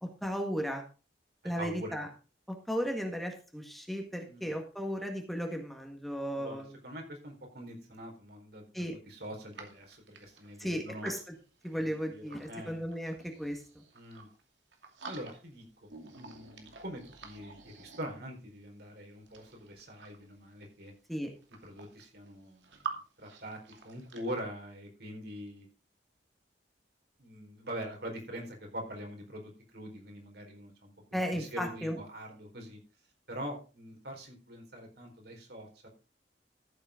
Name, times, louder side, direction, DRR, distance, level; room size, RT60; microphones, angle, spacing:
voice 1, 0.2-0.8 1.4-2.1 2.5-6.7 8.7-9.0 10.6-11.3 11.6-13.8 21.1-21.3 31.1-32.0, equal, ahead, 3 dB, 1.6 m, -35 dB
voice 2, 1.6-2.0 4.2-4.5 6.4-11.1 11.7-12.8 13.9-14.3 15.1-20.9 21.6-22.7 23.2-25.7 27.2-32.8 33.3-35.9, equal, 60° right, 2 dB, 4.4 m, -44 dB
sound 1, 9.5-12.5 12.9-14.4 14.7-15.6 15.9-18.5 19.1-20.3 21.1-21.2 21.4-22.9 23.2-24.2, right 5 dB, 80° right, 2.5 m, -47 dB
14.0 x 7.8 x 3.7 m, 0.34 s
head